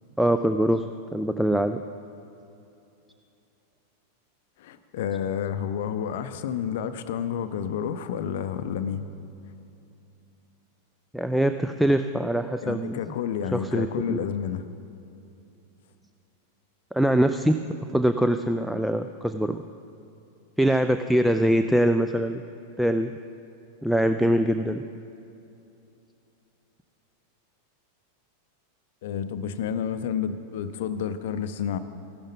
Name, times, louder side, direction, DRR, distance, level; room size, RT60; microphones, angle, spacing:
voice 1, 0.2-0.8 1.1-1.8 11.1-13.0 13.5-14.2 16.9-17.6 17.9-19.6 20.6-22.4 22.8-23.1 23.8-24.8, right 1 dB, ahead, 8 dB, 0.3 m, -23 dB
voice 2, 4.6-9.0 12.6-14.6 29.0-31.8, left 8 dB, 55° left, 11 dB, 0.5 m, -30 dB
15.0 x 11.5 x 3.7 m, 2.8 s
figure-of-eight pair, 90°, 0 cm